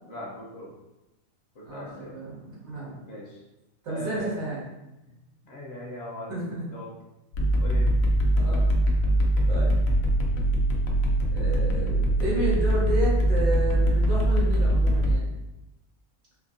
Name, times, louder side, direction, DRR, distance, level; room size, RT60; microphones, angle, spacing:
voice 1, 0.1-0.8 1.5-2.2 3.0-3.4 3.9-4.3 5.1-6.9 7.6-8.0, left 1 dB, 55° left, -3 dB, 0.9 m, -40 dB
voice 2, 1.7-3.0 3.8-4.6 6.3-6.6 8.3-8.6 9.5-9.7 11.3-15.3, right 1 dB, 85° right, -7 dB, 2.0 m, -31 dB
sound 1, 7.3-15.1, right 1 dB, 85° left, 1.1 m, -22 dB
4.3 x 2.6 x 2.5 m, 0.94 s
omnidirectional pair, 1.4 m